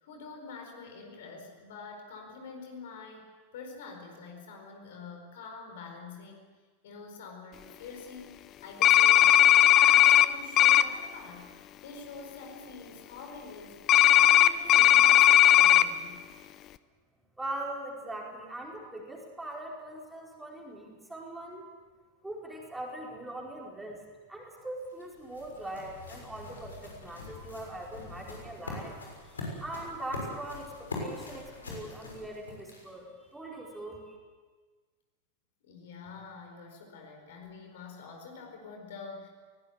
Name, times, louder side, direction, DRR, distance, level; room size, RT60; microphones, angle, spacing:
voice 1, 0.0-6.4 6.8-11.5 11.8-16.2 35.6-39.3, left 4 dB, 55° left, 3 dB, 4.6 m, -46 dB
sound 1, 8.8-10.3 10.6-10.8 13.9-15.8, left 12 dB, 35° left, 0.8 m, -18 dB
voice 2, 17.4-21.7 22.2-24.0 24.3-29.0 29.2-34.2, right 1 dB, 5° right, -1 dB, 4.7 m, -41 dB
sound 2, 24.5-33.1, left 2 dB, 70° left, 6.5 m, -43 dB
22.5 x 18.5 x 8.2 m, 1.4 s
figure-of-eight pair, 90°, 0 cm